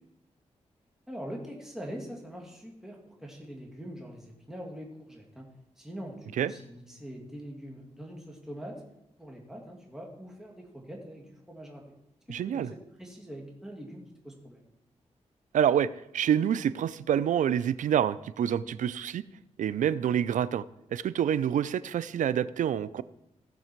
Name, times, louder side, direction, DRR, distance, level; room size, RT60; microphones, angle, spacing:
voice 1, 1.1-5.5 5.8-8.8 9.2-11.8 12.3-14.7, equal, 5° right, -1 dB, 2.5 m, -43 dB
voice 2, 12.3-12.7 15.5-19.2 19.6-20.6 20.9-23.0, right 9 dB, 90° right, 17 dB, 0.4 m, -27 dB
15.5 x 6.7 x 4.5 m, 0.85 s
cardioid pair, 65°, 13 cm